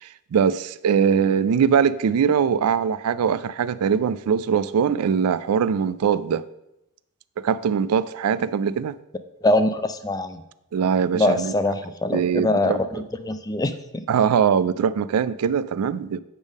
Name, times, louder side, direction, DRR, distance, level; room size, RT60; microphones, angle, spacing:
voice 1, 0.0-6.4 7.4-9.0 10.7-11.5 12.1-13.0 14.1-16.2, right 7 dB, 75° right, 0.3 m, -22 dB
voice 2, 9.4-10.4 11.1-13.7, left 2 dB, 15° left, 0.4 m, -23 dB
8.3 x 3.6 x 6.3 m
head